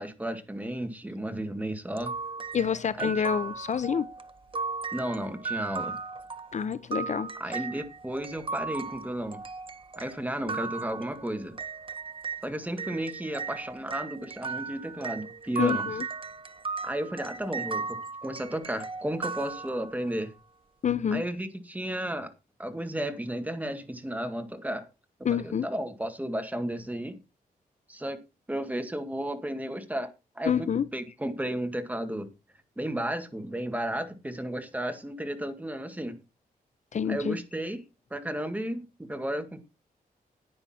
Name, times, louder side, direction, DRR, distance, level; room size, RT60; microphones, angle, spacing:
voice 1, 0.0-2.1 3.0-3.1 4.9-6.0 7.4-9.4 10.0-11.6 12.4-15.9 16.8-20.3 21.1-22.3 22.6-24.9 25.3-27.2 27.9-28.2 28.5-30.1 30.4-30.7 30.9-32.3 32.8-36.2 37.1-37.8 38.1-39.6, right 1 dB, 10° right, 1.8 m, -33 dB
sound 1, 2.0-12.4 12.8-20.1, right 4 dB, 35° right, 0.9 m, -36 dB
voice 2, 2.5-4.1 6.5-7.6 15.6-16.1 20.8-21.2 25.2-25.7 30.4-30.9 36.9-37.4, left 7 dB, 50° left, 0.6 m, -28 dB
10.0 x 9.7 x 4.3 m
wide cardioid pair, 115°, 15 cm